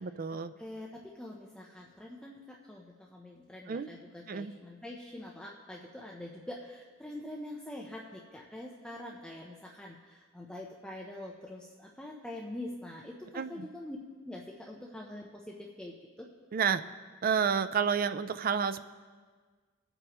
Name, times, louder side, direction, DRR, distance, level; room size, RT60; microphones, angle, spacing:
voice 1, 0.0-0.5 3.7-3.9 4.3-4.5 13.3-13.7 16.5-16.8 17.2-18.8, right 6 dB, 45° right, 11 dB, 0.4 m, -30 dB
voice 2, 0.6-14.0 14.3-16.3, left 1 dB, 5° left, -2 dB, 0.7 m, -45 dB
20.0 x 7.9 x 3.0 m, 1.5 s
head